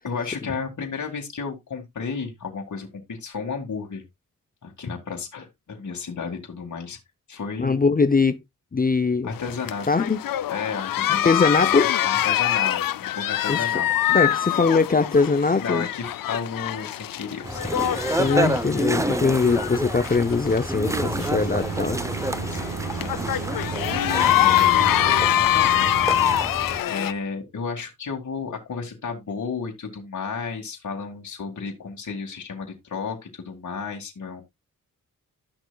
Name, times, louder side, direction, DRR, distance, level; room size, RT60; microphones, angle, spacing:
voice 1, 0.0-4.0 4.6-7.0 7.3-7.8 9.2-9.9 10.5-14.2 15.6-18.2 22.3-23.4 24.3-25.0 25.4-25.9 26.3-26.6 26.9-34.4, left 5 dB, 60° left, 2.1 m, -33 dB
voice 2, 7.6-8.4 8.7-9.3 9.9-10.2 11.1-11.9 13.5-13.6 14.1-15.9 18.2-22.0, left 4 dB, 25° left, 0.7 m, -21 dB
sound 1, 9.3-27.1, left 13 dB, 80° left, 0.5 m, -25 dB
sound 2, 17.4-26.8, right 1 dB, 10° right, 0.7 m, -29 dB
sound 3, 20.8-26.4, right 11 dB, 60° right, 0.5 m, -34 dB
11.5 x 6.2 x 2.3 m
cardioid pair, 75°, 33 cm